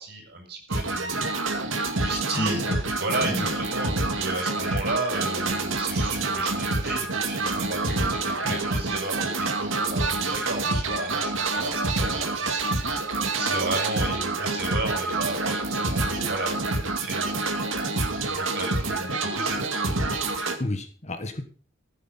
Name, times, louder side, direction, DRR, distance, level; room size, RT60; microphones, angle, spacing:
voice 1, 0.0-2.7 3.0-12.6 13.0-17.6 18.3-19.7, right 2 dB, 55° right, 2 dB, 6.9 m, -34 dB
sound 1, 0.7-20.6, right 3 dB, 85° right, 2.3 m, -27 dB
voice 2, 2.0-2.8 3.2-3.6 8.4-8.6 20.6-21.4, left 1 dB, 35° left, 8 dB, 1.5 m, -31 dB
15.5 x 9.3 x 5.7 m, 0.40 s
head